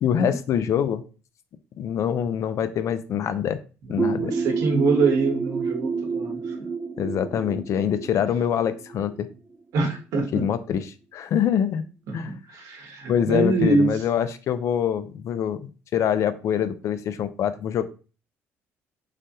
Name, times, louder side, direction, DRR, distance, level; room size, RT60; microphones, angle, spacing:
voice 1, 0.0-1.0 1.8-3.6 3.9-4.3 7.0-9.3 10.3-10.9 11.1-11.8 12.1-12.3 13.1-17.8, left 9 dB, 60° left, 11 dB, 0.4 m, -25 dB
voice 2, 3.8-6.4 9.7-10.4 12.1-13.9, right 3 dB, 75° right, 2 dB, 0.9 m, -24 dB
sound 1, 4.0-9.5, right 4 dB, 25° right, 0.5 m, -30 dB
3.2 x 2.2 x 2.7 m, 0.34 s
supercardioid pair, 70°, 6 cm